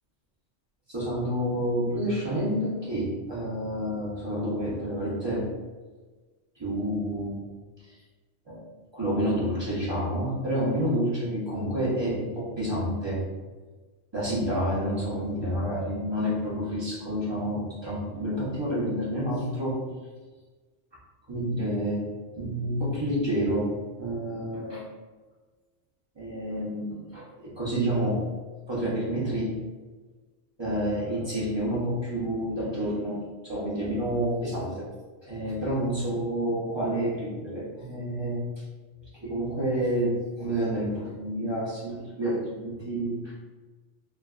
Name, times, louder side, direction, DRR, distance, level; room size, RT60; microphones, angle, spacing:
voice 1, 0.9-5.4 6.6-7.4 7.8-8.0 8.5-8.7 8.9-13.2 14.1-19.8 21.3-22.0 22.3-23.7 24.0-24.9 26.2-28.2 28.7-29.5 30.6-33.2 33.4-34.9 35.2-38.5 39.2-43.3, equal, 30° right, -8 dB, 0.6 m, -29 dB
3.1 x 2.2 x 2.3 m, 1.3 s
omnidirectional pair, 1.3 m